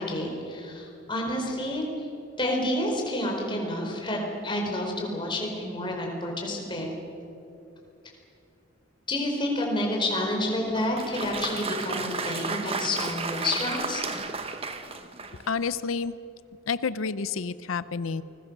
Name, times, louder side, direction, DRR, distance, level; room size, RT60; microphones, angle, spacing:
voice 1, 0.0-2.1 2.4-6.9 9.1-14.0, left 1 dB, 25° left, 0 dB, 4.6 m, -29 dB
Applause, 10.7-15.6, right 4 dB, 30° right, 1.2 m, -33 dB
voice 2, 15.5-16.2 16.7-18.2, left 5 dB, 90° left, 15 dB, 0.6 m, -29 dB
29.0 x 21.0 x 6.8 m, 2.7 s
head